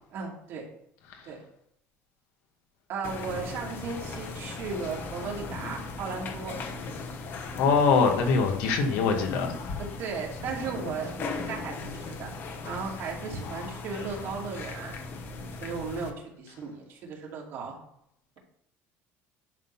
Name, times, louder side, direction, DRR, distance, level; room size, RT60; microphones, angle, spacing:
voice 1, 0.1-0.6 1.2-1.4 2.9-6.5 9.8-12.3 12.6-15.0 15.2-17.8, right 5 dB, 50° right, 2.4 m, -36 dB
sound 1, 3.0-16.1, left 4 dB, 40° left, 1.1 m, -38 dB
voice 2, 7.6-9.6, left 5 dB, 75° left, 1.9 m, -23 dB
10.5 x 3.9 x 5.6 m
cardioid pair, 170°, 6 cm